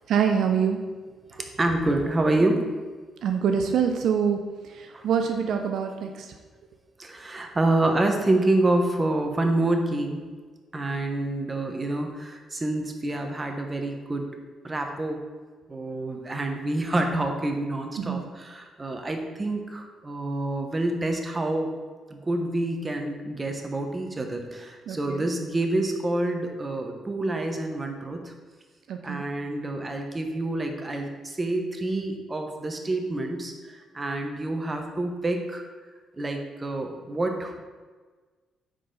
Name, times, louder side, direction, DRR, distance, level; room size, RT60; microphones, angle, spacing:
voice 1, 0.1-0.8 3.2-4.4 4.6-6.3 18.0-18.3 24.9-25.3 28.9-29.2, right 7 dB, 70° right, 5 dB, 0.5 m, -25 dB
voice 2, 1.3-2.7 4.9-5.1 7.0-10.2 10.7-14.3 14.6-15.2 15.7-21.7 22.1-28.3 29.0-35.6 36.2-37.6, right 2 dB, 25° right, 4 dB, 1.1 m, -27 dB
9.9 x 4.2 x 3.9 m, 1.4 s
cardioid pair, 90°, 0 cm